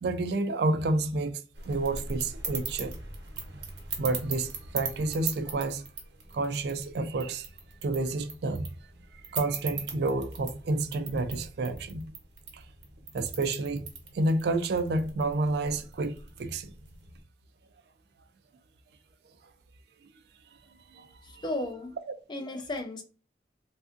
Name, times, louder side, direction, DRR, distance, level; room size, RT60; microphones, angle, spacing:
voice 1, 0.0-3.0 4.0-5.9 6.3-7.5 7.8-8.7 9.3-12.1 12.5-12.6 13.1-13.9 14.1-16.7 20.9-21.4, right 2 dB, 65° right, 0.3 m, -30 dB
sound 1, 1.5-17.2, right 5 dB, 85° right, 0.9 m, -41 dB
voice 2, 21.2-21.9 22.3-23.0, left 1 dB, 25° left, 0.4 m, -34 dB
3.3 x 2.5 x 2.4 m
head